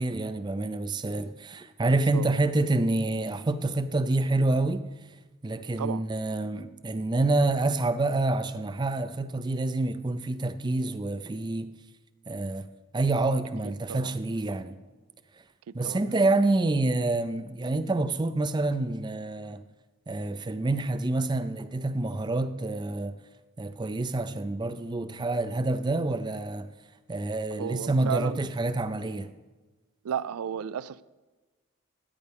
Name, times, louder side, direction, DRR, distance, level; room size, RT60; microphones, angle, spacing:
voice 1, 0.0-4.8 5.4-11.7 12.3-12.7 12.9-14.8 15.7-19.6 20.1-23.2 23.6-26.7 27.1-29.3, right 2 dB, 20° right, 0.4 m, -27 dB
voice 2, 2.1-2.5 5.8-6.0 13.9-14.2 15.8-16.0 27.6-28.4 30.0-31.0, right 8 dB, 85° right, 0.4 m, -33 dB
13.5 x 9.5 x 3.5 m
head